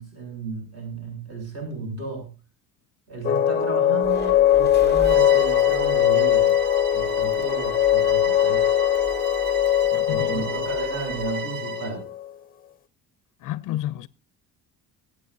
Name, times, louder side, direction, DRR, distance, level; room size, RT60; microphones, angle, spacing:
voice 1, 0.0-2.3 3.1-6.5 6.9-8.7 10.1-12.0, right 3 dB, 45° right, 7.1 m, -33 dB
sound 1, 3.2-12.3, left 11 dB, 25° left, 0.7 m, -21 dB
sound 2, 4.0-11.3, equal, 30° right, 3.4 m, -42 dB
Bowed string instrument, 5.0-12.0, right 7 dB, 70° right, 1.3 m, -35 dB
voice 2, 9.9-10.4 13.4-14.1, left 14 dB, 60° left, 0.5 m, -30 dB
25.0 x 8.8 x 2.7 m
cardioid pair, 135°, 36 cm